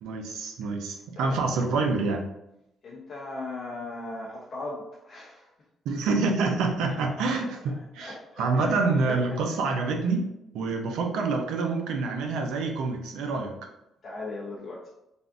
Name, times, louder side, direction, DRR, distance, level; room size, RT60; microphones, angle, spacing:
voice 1, 0.0-2.3 5.8-10.3 10.5-13.5, right 3 dB, 90° right, 3 dB, 0.5 m, -27 dB
voice 2, 2.8-5.5 6.9-7.2 7.6-7.7 8.0-8.8 9.1-9.2 9.5-9.6 14.0-14.9, left 2 dB, 50° left, -4 dB, 0.7 m, -38 dB
3.4 x 2.5 x 2.4 m, 0.85 s
cardioid pair, 90°, 0 cm